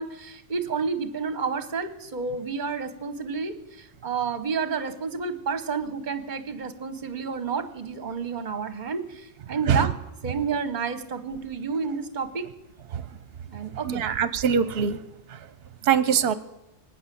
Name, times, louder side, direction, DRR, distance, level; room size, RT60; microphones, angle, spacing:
voice 1, 0.0-9.9 10.2-12.5 13.5-14.0, right 5 dB, 45° right, 10 dB, 1.3 m, -30 dB
voice 2, 13.8-15.0 15.9-16.3, right 7 dB, 60° right, 14 dB, 1.0 m, -22 dB
20.0 x 8.4 x 8.5 m, 0.95 s
omnidirectional pair, 1.2 m